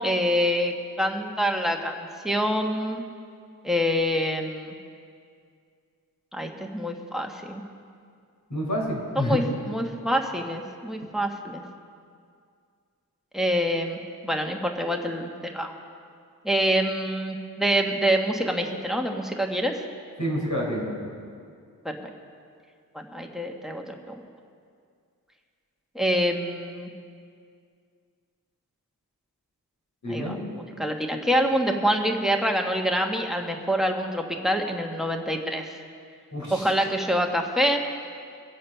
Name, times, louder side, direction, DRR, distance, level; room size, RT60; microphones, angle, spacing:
voice 1, 0.0-3.0 3.6-4.7 6.3-7.6 9.1-11.6 13.3-15.7 16.4-19.7 21.8-22.0 22.9-24.1 25.9-26.9 30.1-35.8 36.5-37.8, equal, ahead, 3 dB, 1.3 m, -26 dB
voice 2, 8.5-9.4 20.2-20.9 30.0-30.4 36.3-36.7, equal, 55° left, -3 dB, 4.4 m, -28 dB
23.0 x 7.8 x 5.7 m, 2.2 s
wide cardioid pair, 85°, 37 cm